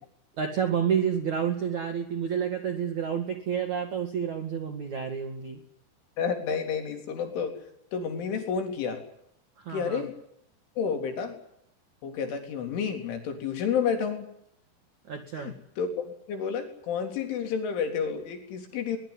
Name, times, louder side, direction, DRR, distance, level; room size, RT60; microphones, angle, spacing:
voice 1, 0.4-5.6 9.6-10.0 15.1-15.5, right 7 dB, 45° right, 5 dB, 2.8 m, -29 dB
voice 2, 6.2-7.6 7.9-9.0 9.7-10.2 10.8-11.4 12.0-14.3 15.3-19.0, left 6 dB, 75° left, 5 dB, 6.1 m, -30 dB
23.5 x 22.0 x 9.9 m, 0.72 s
omnidirectional pair, 5.7 m